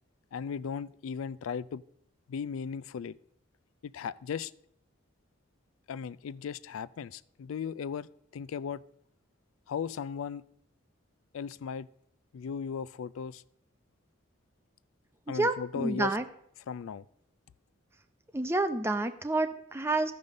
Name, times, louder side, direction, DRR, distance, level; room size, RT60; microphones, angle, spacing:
voice 1, 0.3-1.8 2.3-3.1 3.8-4.5 5.9-8.1 8.3-8.8 9.7-10.4 11.3-11.9 12.3-13.4 15.3-16.2 16.7-17.1, left 6 dB, 85° left, 20 dB, 0.4 m, -36 dB
voice 2, 15.3-16.2 18.3-20.1, right 2 dB, 10° right, 8 dB, 0.5 m, -29 dB
13.5 x 5.5 x 6.4 m, 0.72 s
head